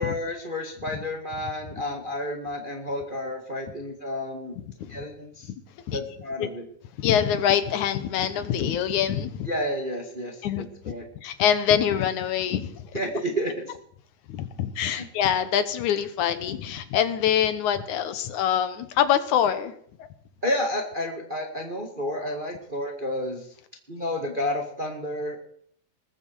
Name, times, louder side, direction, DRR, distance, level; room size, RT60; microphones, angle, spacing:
voice 1, 0.0-4.6 4.9-5.5 5.9-6.6 9.4-11.0 12.9-13.7 14.9-15.0 20.4-23.5 23.9-25.4, left 1 dB, 20° right, 3 dB, 1.4 m, -31 dB
voice 2, 7.0-9.5 10.4-10.9 11.2-13.0 14.3-19.7 20.0-20.1, left 9 dB, 75° left, 11 dB, 2.4 m, -25 dB
20.0 x 15.0 x 4.7 m, 0.62 s
omnidirectional pair, 3.6 m